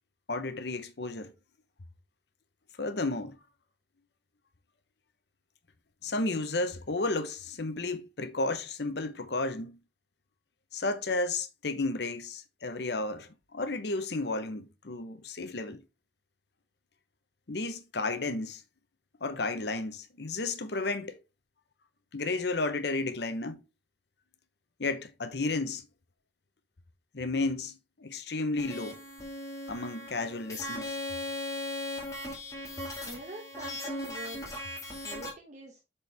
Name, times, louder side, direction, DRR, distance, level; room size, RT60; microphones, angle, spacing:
voice 1, 0.3-1.3 2.8-3.4 6.0-9.8 10.7-15.8 17.5-18.6 19.2-21.2 22.1-23.6 24.8-25.8 27.1-29.0 29.7-31.0, left 3 dB, 65° left, 0.9 m, -32 dB
sound 1, 28.6-35.3, left 1 dB, 20° left, 2.0 m, -38 dB
voice 2, 33.0-34.4 35.0-35.8, right 2 dB, 40° right, 1.1 m, -45 dB
8.0 x 4.5 x 3.4 m
head